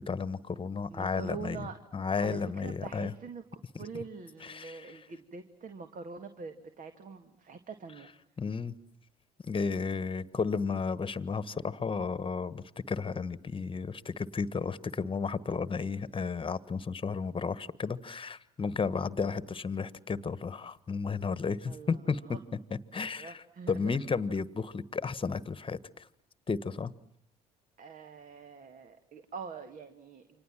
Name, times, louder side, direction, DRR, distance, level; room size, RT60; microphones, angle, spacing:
voice 1, 0.0-1.7 1.9-3.1 3.7-3.8 4.4-5.0 8.4-8.7 9.4-22.4 22.7-26.1 26.5-26.9, left 5 dB, 25° left, 16 dB, 1.5 m, -33 dB
voice 2, 0.9-1.8 2.2-3.4 3.8-8.1 18.9-19.1 21.7-22.0 22.3-22.4 22.9-24.0 27.8-30.4, right 5 dB, 45° right, 8 dB, 2.0 m, -44 dB
29.5 x 25.5 x 7.5 m, 0.64 s
hypercardioid pair, 60°, 19 cm